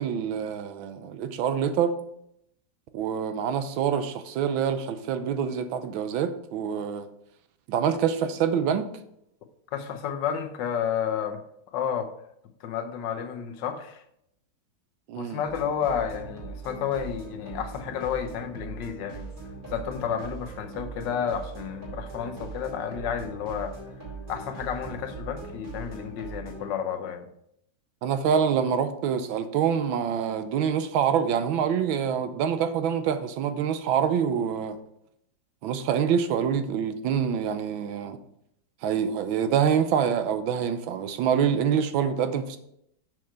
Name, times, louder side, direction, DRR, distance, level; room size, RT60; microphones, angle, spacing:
voice 1, 0.0-1.9 2.9-7.1 7.7-8.9 15.1-15.4 28.0-34.8 35.6-38.2 38.8-42.6, right 8 dB, 90° right, 1.5 m, -26 dB
voice 2, 9.7-11.4 11.7-12.1 12.6-14.0 15.2-19.3 19.7-23.8 24.3-27.3, left 8 dB, 70° left, 1.5 m, -31 dB
sound 1, 15.5-26.7, right 4 dB, 50° right, 3.1 m, -40 dB
6.4 x 6.1 x 4.5 m
omnidirectional pair, 2.1 m